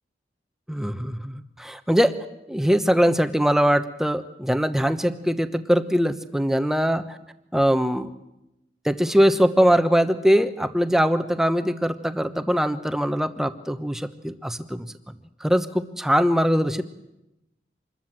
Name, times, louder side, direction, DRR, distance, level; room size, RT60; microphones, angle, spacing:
voice 1, 0.7-2.2 2.5-7.2 7.5-8.1 8.8-14.9 15.4-16.8, equal, 5° right, 9 dB, 1.0 m, -22 dB
26.5 x 21.5 x 7.6 m, 0.92 s
head